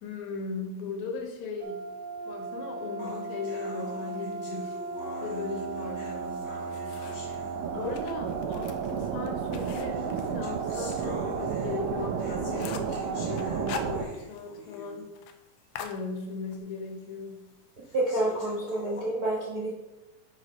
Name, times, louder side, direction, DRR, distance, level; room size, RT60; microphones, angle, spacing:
voice 1, 0.0-1.9 2.3-4.8 5.2-6.5 7.7-15.1 15.7-17.5, left 4 dB, 70° left, 2 dB, 2.4 m, -37 dB
sound 1, 1.6-14.1, right 6 dB, 85° right, 2.2 m, -33 dB
sound 2, 3.0-8.1 9.0-9.1 9.9-15.2 15.6-15.7 16.2-16.3 17.0-17.1 17.8-19.0, left 3 dB, 55° left, 2.9 m, -45 dB
sound 3, 6.2-7.4 7.8-11.1 11.4-11.5 11.9-12.0 12.3-13.0 13.4-14.5 14.7-14.8 15.1-15.4 15.7-16.6, left 6 dB, 85° left, 1.5 m, -42 dB
voice 2, 17.9-19.7, right 1 dB, 50° right, -6 dB, 1.1 m, -29 dB
6.2 x 4.8 x 5.3 m, 1.0 s
omnidirectional pair, 3.6 m